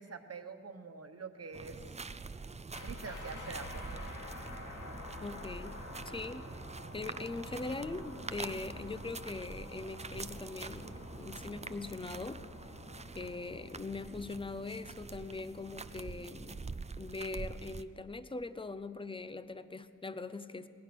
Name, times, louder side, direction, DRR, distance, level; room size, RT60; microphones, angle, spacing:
voice 1, 0.0-1.9 2.8-4.0, right 4 dB, 55° right, 7 dB, 1.4 m, -45 dB
sound 1, 1.5-17.8, right 4 dB, 20° right, 0.5 m, -45 dB
sound 2, 2.7-13.7, left 2 dB, 85° left, 3.2 m, -48 dB
voice 2, 5.2-5.8 6.0-6.5 6.9-12.4 13.2-20.7, left 3 dB, 15° left, 13 dB, 0.7 m, -41 dB
27.0 x 20.0 x 6.3 m, 2.4 s
wide cardioid pair, 170°, 30 cm